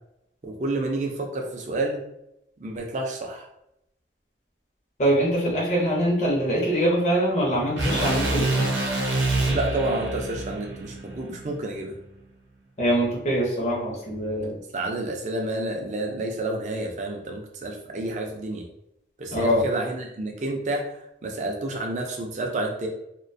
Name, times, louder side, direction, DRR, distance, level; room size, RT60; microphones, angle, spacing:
voice 1, 0.4-2.0 2.6-3.5 9.5-11.9 14.7-18.6 19.2-20.9 21.2-22.9, right 2 dB, 40° right, 2 dB, 0.4 m, -29 dB
voice 2, 5.0-9.0 12.8-14.6 19.3-19.6, right 1 dB, 40° left, -5 dB, 0.6 m, -24 dB
sound 1, 7.8-11.9, right 2 dB, 90° right, 0.6 m, -27 dB
2.3 x 2.2 x 2.5 m, 0.82 s
head